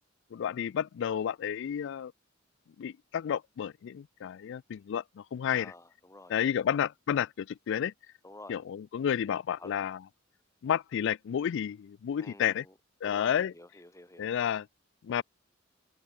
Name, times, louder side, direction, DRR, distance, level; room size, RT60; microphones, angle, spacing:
voice 1, 0.3-2.1 2.8-5.7 6.3-7.9 8.5-10.0 10.6-12.6 13.0-13.5 14.2-14.7 15.0-15.2, left 9 dB, 65° left, 0.3 m, -31 dB
voice 2, 5.5-6.7 8.2-8.6 9.6-9.8 12.2-12.7 13.0-14.3, left 2 dB, 15° left, 4.3 m, -51 dB
head